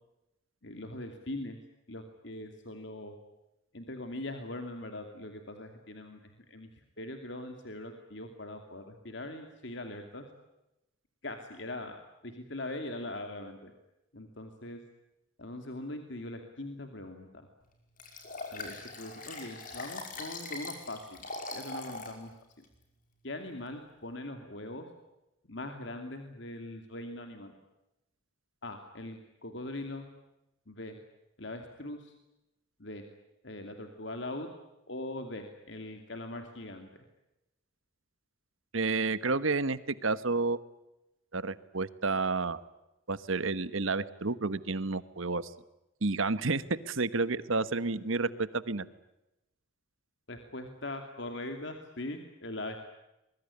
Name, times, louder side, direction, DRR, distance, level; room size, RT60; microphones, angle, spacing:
voice 1, 0.6-1.6 1.9-3.1 3.7-6.7 7.0-10.3 11.2-12.0 12.2-13.7 14.1-14.8 15.4-17.5 18.5-21.2 21.5-22.3 23.2-24.9 25.5-27.5 28.6-30.1 30.7-31.0 31.4-32.1 32.8-33.0 33.4-34.5 34.9-36.9 50.3-52.8, left 1 dB, 60° left, 5 dB, 2.6 m, -41 dB
Liquid, 18.0-22.2 22.6-22.7, left 3 dB, 40° left, 5.4 m, -41 dB
voice 2, 38.7-40.6 41.3-42.6 43.1-45.5 46.0-48.8, right 3 dB, 85° right, 15 dB, 1.3 m, -30 dB
25.0 x 22.0 x 9.9 m, 0.93 s
head